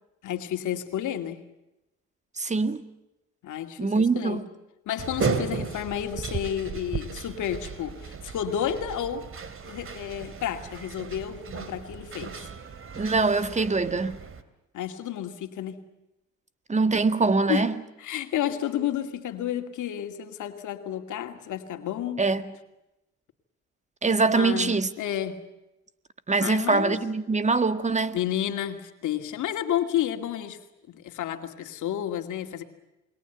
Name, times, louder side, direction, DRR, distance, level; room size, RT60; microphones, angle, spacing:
voice 1, 0.2-1.4 3.4-4.4 4.9-9.3 9.6-12.4 14.7-15.9 17.5-17.7 18.0-22.2 24.4-25.4 26.4-27.0 28.1-30.6 30.9-32.6, left 10 dB, 80° left, 2.5 m, -31 dB
voice 2, 2.4-2.8 3.8-4.5 12.9-14.2 16.7-17.7 22.2-22.5 24.0-24.9 26.3-28.2, right 4 dB, 25° right, 1.8 m, -23 dB
sound 1, 5.0-14.4, right 5 dB, 45° right, 2.7 m, -35 dB
28.5 x 22.5 x 8.1 m
cardioid pair, 90°, 30 cm